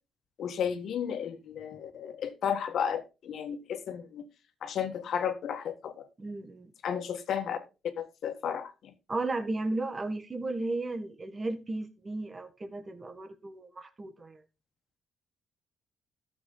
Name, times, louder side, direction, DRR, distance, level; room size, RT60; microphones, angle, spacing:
voice 1, 0.4-4.2 4.6-6.1 6.8-7.6 8.0-8.9, left 8 dB, 70° left, 1.6 m, -33 dB
voice 2, 6.2-6.7 9.1-14.4, right 2 dB, 30° right, 1.6 m, -35 dB
13.0 x 7.0 x 3.9 m
cardioid pair, 90°, 0 cm